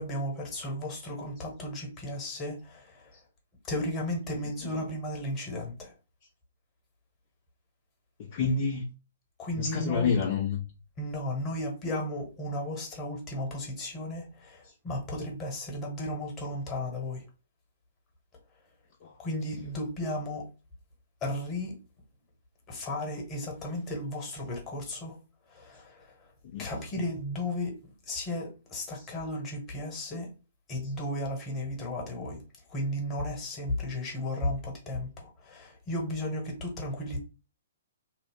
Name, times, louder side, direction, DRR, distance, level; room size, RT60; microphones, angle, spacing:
voice 1, 0.0-3.2 3.7-5.9 9.4-10.2 11.0-17.3 19.2-20.5 21.2-21.8 22.7-25.2 25.5-26.3 26.6-27.7 28.1-30.3 30.7-32.4 32.7-37.2, left 1 dB, 25° left, 1.2 m, -34 dB
voice 2, 4.4-4.9 8.2-8.9 9.6-10.6 14.6-14.7 16.4-16.5 19.0-19.2 19.5-19.7 26.4-27.1 30.8-30.9, left 5 dB, 45° left, 0.6 m, -31 dB
2.7 x 2.0 x 3.5 m
hypercardioid pair, 125°, 0 cm